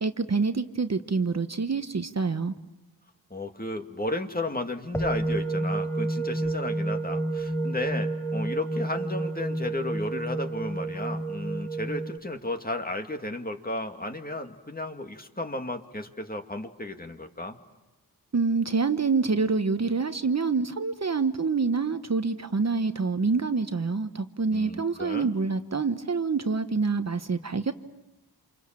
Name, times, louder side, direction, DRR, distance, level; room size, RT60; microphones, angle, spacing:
voice 1, 0.0-2.5 18.3-27.7, right 4 dB, 40° right, 9 dB, 1.1 m, -26 dB
voice 2, 3.3-17.6 24.5-25.3, left 1 dB, 25° left, 5 dB, 2.2 m, -34 dB
sound 1, 4.9-12.2, right 2 dB, 5° left, 1.1 m, -30 dB
29.0 x 27.5 x 7.5 m, 1.0 s
wide cardioid pair, 80°, 38 cm